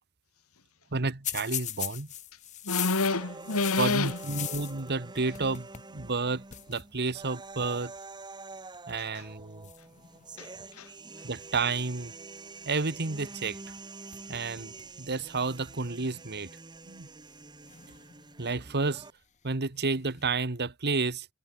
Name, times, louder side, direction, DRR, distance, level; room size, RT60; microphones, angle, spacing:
voice 1, 0.9-2.1 3.8-7.9 8.9-9.7 11.2-12.1 12.6-13.6 14.3-16.5 16.8-17.1 18.4-19.0 19.4-21.3, right 3 dB, 50° right, 1.5 m, -31 dB
sound 1, 1.2-4.9 5.2-5.9 6.2-6.3 6.5-6.8 7.7-8.0 8.7-9.1 9.6-10.7 13.7-13.8 14.1-14.9 15.4-15.5 16.4-16.5 17.6-18.5 19.7-20.3, left 13 dB, 35° left, 0.6 m, -39 dB
voice 2, 2.6-4.3 9.0-9.3 10.4-10.9, left 3 dB, 75° left, 2.1 m, -29 dB
sound 2, 3.1-19.1, right 3 dB, 20° right, 1.5 m, -46 dB
head